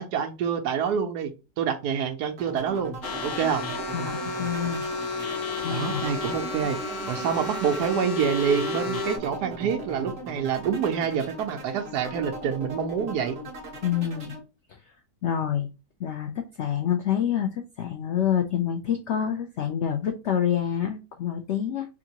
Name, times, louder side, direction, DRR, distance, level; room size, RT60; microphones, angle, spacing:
voice 1, 0.0-2.9 3.2-3.6 5.7-6.8 7.1-13.4, right 7 dB, 75° right, 6 dB, 1.2 m, -27 dB
sound 1, 2.4-14.4, right 1 dB, 45° right, 1.1 m, -39 dB
sound 2, 3.0-9.2, left 2 dB, 70° left, 1.3 m, -32 dB
voice 2, 3.9-4.8 5.6-6.0 13.8-14.3 15.2-15.7 16.0-21.9, left 9 dB, 85° left, 4 dB, 0.6 m, -27 dB
5.0 x 2.6 x 2.8 m, 0.30 s
omnidirectional pair, 1.8 m